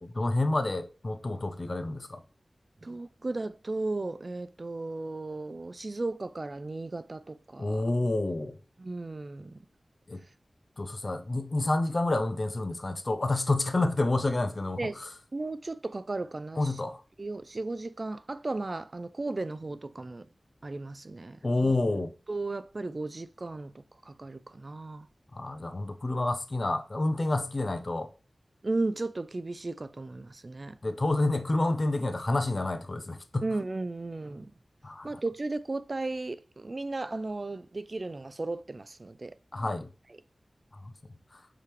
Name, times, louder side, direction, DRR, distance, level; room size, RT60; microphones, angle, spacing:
voice 1, 0.0-2.2 7.6-8.6 10.1-10.2 10.8-15.1 16.6-17.0 21.4-22.1 25.3-28.1 30.8-33.5 34.8-35.2 39.5-39.9 40.8-40.9 41.3-41.4, left 2 dB, 50° left, 0.5 m, -29 dB
voice 2, 2.8-7.8 8.8-9.7 14.8-15.0 15.3-16.7 17.2-20.3 20.6-21.7 22.3-25.1 28.6-30.8 33.4-34.5 35.0-39.3, right 2 dB, 50° right, 0.3 m, -35 dB
4.8 x 2.9 x 3.3 m
wide cardioid pair, 50°, 0 cm